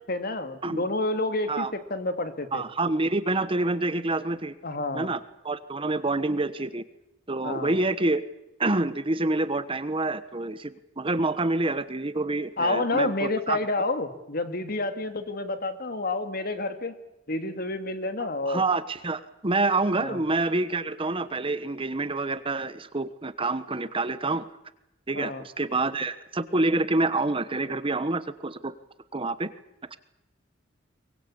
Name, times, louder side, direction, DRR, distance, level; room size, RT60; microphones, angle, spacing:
voice 1, 0.1-2.6 4.6-5.1 7.4-7.8 12.6-16.9 17.3-18.6 20.0-20.2 25.1-25.4, left 2 dB, 55° left, 9 dB, 2.5 m, -29 dB
voice 2, 2.5-4.5 4.9-5.2 5.4-6.8 7.3-8.2 8.6-13.6 18.5-24.5 25.1-28.7 29.1-29.5, right 2 dB, 30° right, 13 dB, 1.2 m, -27 dB
24.0 x 20.5 x 8.7 m, 0.86 s
head